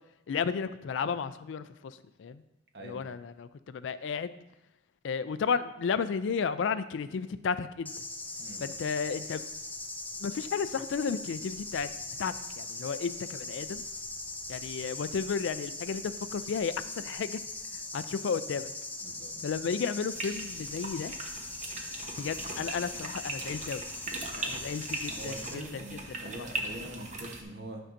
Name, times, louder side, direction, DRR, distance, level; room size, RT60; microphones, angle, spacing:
voice 1, 0.3-2.4 2.8-4.3 5.0-7.9 8.6-9.4 10.2-11.9 12.2-13.8 14.5-17.4 17.9-18.7 19.4-21.1 22.2-23.8 24.3-26.5, left 6 dB, 75° left, 14 dB, 0.4 m, -33 dB
sound 1, 7.8-25.5, left 2 dB, 10° left, 0.4 m, -40 dB
voice 2, 19.0-19.3 25.1-27.8, right 1 dB, 65° right, 2 dB, 1.1 m, -43 dB
sound 2, 20.1-27.4, right 3 dB, 40° right, 0.9 m, -39 dB
10.0 x 5.5 x 2.6 m, 0.89 s
head